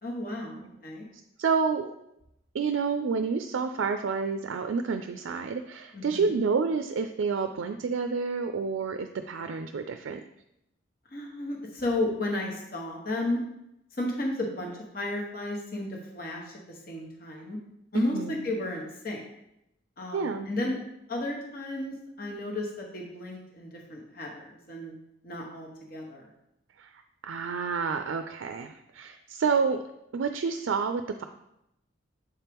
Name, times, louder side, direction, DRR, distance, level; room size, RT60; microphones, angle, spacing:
voice 1, 0.0-1.0 5.9-6.3 11.1-13.4 14.0-15.9 16.1-17.6 17.9-19.2 20.0-20.8 21.1-24.9 25.2-26.2, left 2 dB, 45° left, 0 dB, 1.0 m, -33 dB
voice 2, 1.4-1.9 2.5-10.2 17.9-18.5 20.1-20.5 26.8-29.9 30.1-31.2, right 5 dB, 75° right, 7 dB, 0.4 m, -29 dB
7.1 x 4.4 x 3.5 m, 0.83 s
head